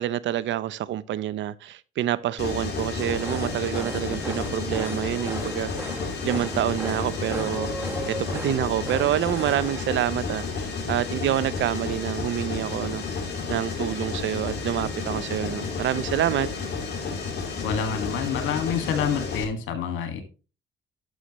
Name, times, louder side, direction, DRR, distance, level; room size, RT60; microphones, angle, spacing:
voice 1, 0.0-5.7 6.2-16.5, right 12 dB, 70° right, 0.6 m, -27 dB
Mechanisms, 2.4-19.4, left 4 dB, 55° left, 2.6 m, -31 dB
sound 1, 3.0-9.8, right 1 dB, 10° right, 1.5 m, -37 dB
voice 2, 17.6-20.2, left 7 dB, 85° left, 1.8 m, -27 dB
11.5 x 6.4 x 3.0 m
cardioid pair, 90°, 20 cm